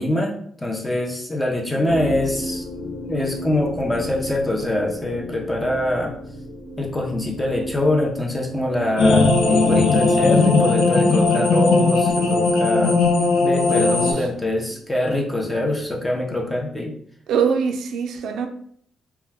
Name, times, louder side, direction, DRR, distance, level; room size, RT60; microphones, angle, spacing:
voice 1, 0.0-2.6 3.1-6.1 6.8-13.0 13.4-16.9, left 1 dB, 10° left, 0.6 m, -24 dB
voice 2, 1.7-2.2 10.8-10.9 13.7-14.3 17.3-18.5, right 6 dB, 80° right, 0.3 m, -24 dB
sound 1, 1.9-16.7, equal, 50° left, 1.0 m, -36 dB
sound 2, 9.0-14.1, left 3 dB, 85° left, 0.6 m, -17 dB
2.2 x 2.1 x 3.3 m
cardioid pair, 85°, 0 cm